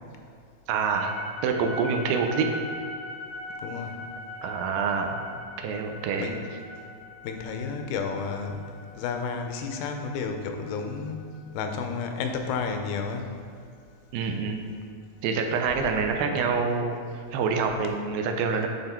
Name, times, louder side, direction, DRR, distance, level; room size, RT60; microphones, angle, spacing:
voice 1, 0.7-1.1 1.4-2.5 4.4-5.2 5.6-6.3 14.1-14.6 15.2-17.0 17.3-18.7, right 5 dB, 80° right, 4 dB, 2.3 m, -26 dB
sound 1, 0.9-13.1, left 1 dB, 70° left, 3.4 m, -41 dB
voice 2, 3.6-4.0 6.2-6.4 7.2-8.6 9.0-11.2 11.5-13.3, left 5 dB, 90° left, 5 dB, 2.5 m, -31 dB
9.7 x 3.7 x 4.3 m, 2.3 s
omnidirectional pair, 4.1 m